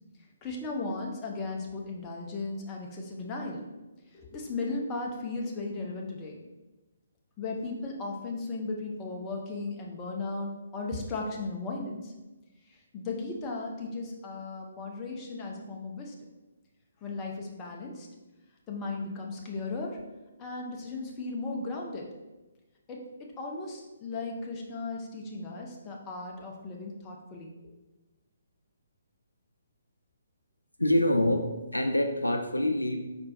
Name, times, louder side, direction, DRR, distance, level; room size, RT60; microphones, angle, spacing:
voice 1, 0.4-3.6 4.1-6.4 7.4-12.1 12.6-16.1 17.0-18.1 18.7-20.0 20.4-22.1 22.9-27.5, left 3 dB, 20° left, -1 dB, 0.7 m, -36 dB
voice 2, 30.8-31.4 31.7-33.0, left 1 dB, 85° left, 6 dB, 0.4 m, -25 dB
4.3 x 4.3 x 2.6 m, 1.1 s
figure-of-eight pair, 135°, 0 cm